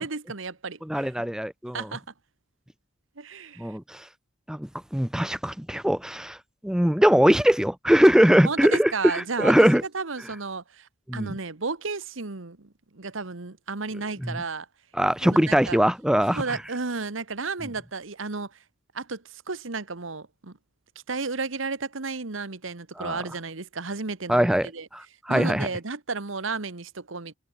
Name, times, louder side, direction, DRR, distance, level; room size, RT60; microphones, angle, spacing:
voice 1, 0.0-1.1 1.7-2.0 3.2-3.7 8.4-14.7 15.2-15.8 16.3-18.6 18.9-20.6 21.1-24.9 25.3-27.3, right 4 dB, 80° right, 1.4 m, -33 dB
voice 2, 0.9-1.9 3.6-4.0 4.5-6.4 6.6-9.8 11.1-11.3 14.2-14.3 15.0-16.4 23.0-23.2 24.3-25.0 25.3-25.7, equal, 5° right, 0.7 m, -21 dB
head